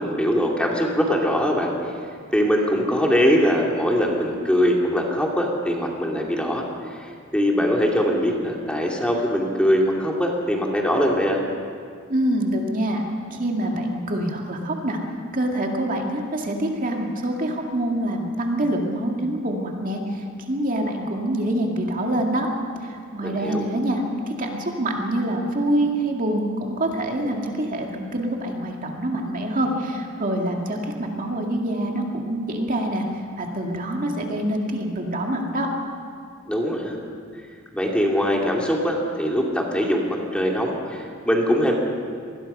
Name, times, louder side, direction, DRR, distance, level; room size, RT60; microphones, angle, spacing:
voice 1, 0.0-1.7 2.3-6.7 7.3-11.4 23.2-23.7 36.5-37.0 37.7-41.8, equal, 5° left, -1 dB, 2.5 m, -22 dB
voice 2, 12.1-13.0 13.3-15.0 15.3-22.5 22.8-24.0 24.4-33.0 33.4-35.7, right 1 dB, 40° right, 1 dB, 2.2 m, -25 dB
25.5 x 20.0 x 5.6 m, 2.2 s
head